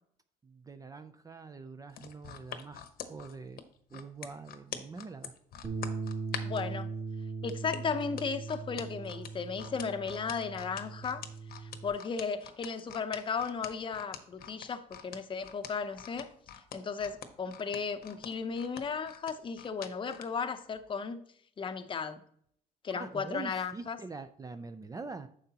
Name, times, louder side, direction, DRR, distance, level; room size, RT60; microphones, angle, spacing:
voice 1, 0.4-3.6 3.9-5.3 22.9-25.3, right 4 dB, 20° right, 0.4 m, -44 dB
sound 1, 1.9-6.7 7.5-20.3 20.7-20.9, left 9 dB, 60° left, 1.0 m, -44 dB
Bass guitar, 5.6-11.9, right 4 dB, 35° right, 2.2 m, -39 dB
voice 2, 6.4-6.9 7.4-11.2 11.6-16.3 16.7-21.2 21.6-22.2 22.8-24.0, left 5 dB, 30° left, 0.7 m, -35 dB
9.7 x 6.7 x 2.9 m
cardioid pair, 110°, 17 cm